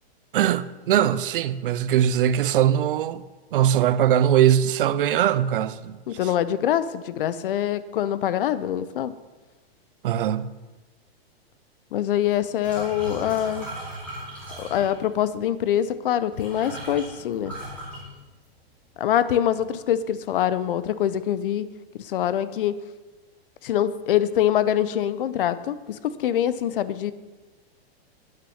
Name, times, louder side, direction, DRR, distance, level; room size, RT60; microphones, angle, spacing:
voice 1, 0.3-3.2 3.5-6.3 10.0-10.5, right 10 dB, 60° right, 0.5 m, -21 dB
voice 2, 6.1-9.1 11.9-13.7 14.6-17.5 19.0-21.7 22.0-22.8 23.6-27.1, left 10 dB, 60° left, 0.6 m, -24 dB
sound 1, 12.6-15.2 16.0-16.1 16.3-18.8 19.1-19.5 19.9-20.6, right 1 dB, 5° left, 2.5 m, -38 dB
9.0 x 6.4 x 6.3 m
supercardioid pair, 175°, 31 cm